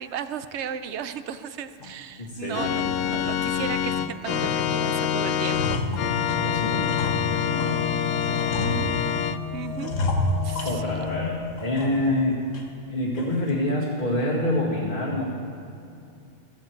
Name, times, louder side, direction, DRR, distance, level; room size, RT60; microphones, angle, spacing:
voice 1, 0.0-5.8 8.6-9.0 9.5-10.0 10.4-11.1, right 8 dB, 70° right, 11 dB, 0.9 m, -35 dB
sound 1, 1.8-2.0 2.4-2.6 3.0-3.9 4.3-4.9 5.2-7.8 8.3-9.3 9.8-11.2 11.6-12.2 12.5-12.6 13.2-13.5, left 1 dB, 90° left, 1.6 m, -31 dB
voice 2, 2.2-2.8 6.4-7.9 8.2-8.5 10.6-12.4 12.9-15.2, left 1 dB, 45° left, -6 dB, 2.0 m, -27 dB
Organ, 2.5-9.4, left 8 dB, 65° left, 0.7 m, -26 dB
sound 2, 4.0-11.7, left 7 dB, 10° left, 1.2 m, -35 dB
15.5 x 14.5 x 4.5 m, 2.6 s
omnidirectional pair, 1.3 m